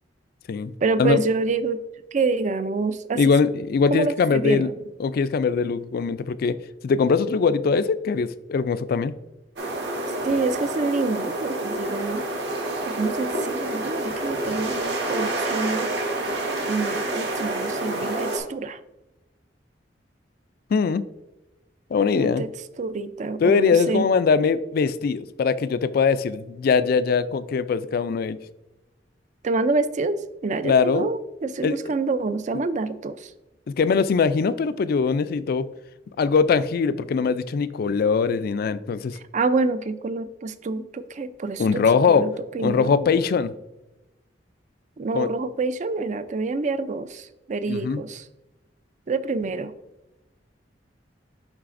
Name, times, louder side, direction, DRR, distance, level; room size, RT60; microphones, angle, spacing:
voice 1, 0.8-1.8 2.1-3.3 3.9-4.7 10.2-12.2 12.8-15.9 16.7-18.8 22.1-22.5 22.8-24.0 29.4-30.2 30.4-33.3 39.2-41.8 42.1-43.1 45.0-48.2 49.1-49.7, right 3 dB, 40° right, 13 dB, 0.4 m, -27 dB
voice 2, 3.2-4.7 5.0-6.6 6.8-9.1 18.0-18.1 20.7-21.0 21.9-22.4 23.4-28.4 30.6-31.1 31.6-31.8 33.8-35.7 36.2-39.2 41.6-42.3 42.6-43.5 45.1-45.3 47.7-48.0, left 5 dB, 55° left, 15 dB, 0.3 m, -21 dB
sound 1, 9.6-18.4, right 2 dB, 65° right, 1.5 m, -28 dB
10.5 x 4.0 x 2.5 m, 1.0 s
head